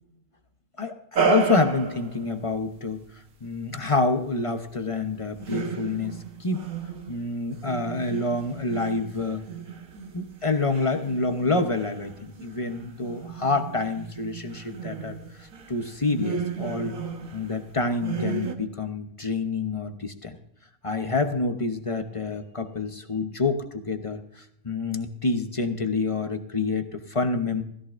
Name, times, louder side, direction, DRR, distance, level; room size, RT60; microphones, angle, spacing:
sound 1, 1.1-2.2 5.4-7.3 7.6-17.7 18.0-18.5, right 5 dB, 80° right, 1.7 m, -33 dB
voice 1, 1.2-3.0 3.4-6.6 7.1-9.4 10.1-16.9 17.3-20.3 20.8-27.6, left 3 dB, 25° left, 7 dB, 0.9 m, -27 dB
16.5 x 14.5 x 2.6 m, 0.73 s
omnidirectional pair, 1.5 m